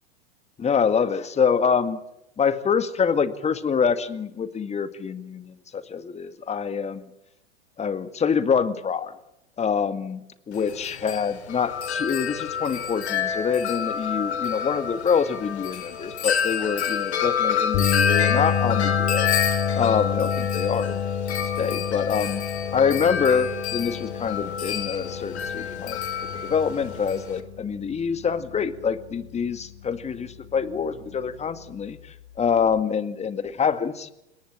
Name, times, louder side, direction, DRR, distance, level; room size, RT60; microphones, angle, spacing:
voice 1, 0.6-2.0 2.4-7.1 7.8-9.1 9.6-10.2 10.5-19.3 19.8-21.0 21.4-22.4 22.7-26.0 26.4-34.1, left 6 dB, 20° left, 11 dB, 2.0 m, -25 dB
Wind chime, 10.5-27.4, left 7 dB, 70° left, 3.7 m, -28 dB
sound 1, 17.7-30.0 30.3-30.6 32.8-32.9, left 8 dB, 45° left, 2.3 m, -30 dB
29.0 x 19.0 x 7.4 m, 0.85 s
figure-of-eight pair, 95°, 34 cm